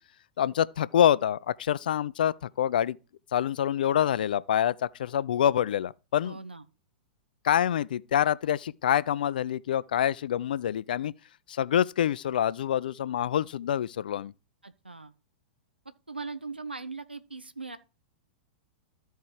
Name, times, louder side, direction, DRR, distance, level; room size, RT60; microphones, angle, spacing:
voice 1, 0.4-3.0 3.3-6.4 7.4-11.1 11.5-14.3, left 10 dB, 60° left, 0.4 m, -26 dB
voice 2, 6.2-6.6 14.6-15.1 16.1-17.8, right 4 dB, 90° right, 0.7 m, -39 dB
13.5 x 4.6 x 4.8 m
figure-of-eight pair, 100°, 5 cm